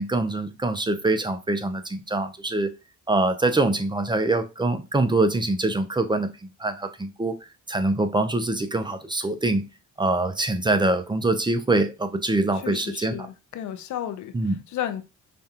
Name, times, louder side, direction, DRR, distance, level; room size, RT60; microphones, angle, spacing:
voice 1, 0.0-2.7 3.1-6.3 6.6-7.4 7.7-9.6 10.0-13.2 14.3-14.6, right 2 dB, 15° right, 0.5 m, -24 dB
voice 2, 12.5-15.0, left 10 dB, 70° left, 0.6 m, -33 dB
5.1 x 2.3 x 2.7 m
cardioid pair, 90°, 30 cm